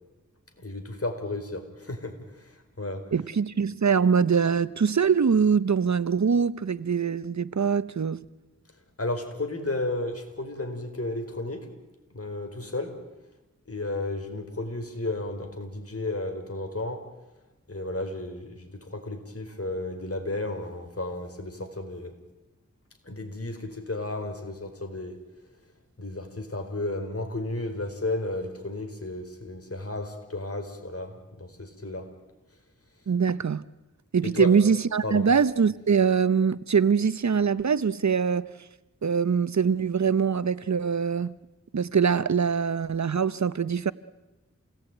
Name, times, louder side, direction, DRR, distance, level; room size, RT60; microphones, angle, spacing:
voice 1, 0.6-3.1 9.0-11.7 12.1-13.0 13.7-17.1 17.7-22.1 23.0-25.2 26.0-32.1 34.2-34.5 35.0-35.3, left 2 dB, 50° left, 4.7 m, -33 dB
voice 2, 3.1-8.2 33.1-33.6 34.1-38.5 39.0-41.4 41.7-43.9, right 6 dB, 65° right, 0.8 m, -23 dB
28.0 x 19.0 x 9.1 m
wide cardioid pair, 50°, 30 cm